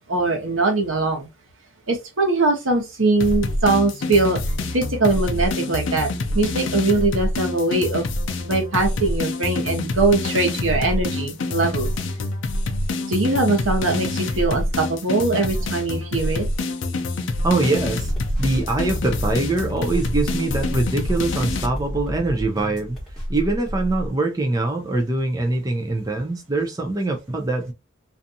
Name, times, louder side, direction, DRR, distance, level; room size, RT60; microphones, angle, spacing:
voice 1, 0.1-1.3 1.9-4.4 4.7-6.1 6.3-8.0 8.4-11.9 13.1-16.5, right 3 dB, 85° right, 1.0 m, -21 dB
sound 1, 3.2-21.7, left 2 dB, 70° left, 0.5 m, -26 dB
voice 2, 17.4-18.1 18.4-23.0 23.3-27.7, right 2 dB, 20° right, 0.4 m, -23 dB
sound 2, 17.8-24.1, equal, ahead, 1.1 m, -31 dB
2.6 x 2.3 x 2.7 m
head